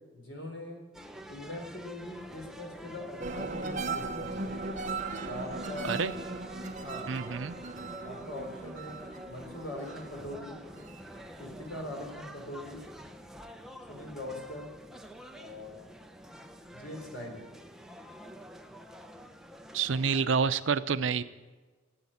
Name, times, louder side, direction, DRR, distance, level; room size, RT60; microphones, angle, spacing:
voice 1, 0.1-0.8 1.3-4.6 5.2-6.0 6.8-7.2 8.0-9.0 9.3-10.6 11.4-12.8 13.9-14.7 15.4-15.8 16.7-17.4, left 1 dB, 80° left, 2 dB, 3.9 m, -41 dB
sound 1, 0.9-20.2, equal, 5° right, 0.7 m, -47 dB
sound 2, 3.2-12.0 12.4-12.9, right 3 dB, 40° right, 1.0 m, -39 dB
voice 2, 7.1-7.6 19.7-21.2, right 5 dB, 80° right, 13 dB, 0.6 m, -28 dB
14.5 x 8.7 x 8.5 m, 1.3 s
head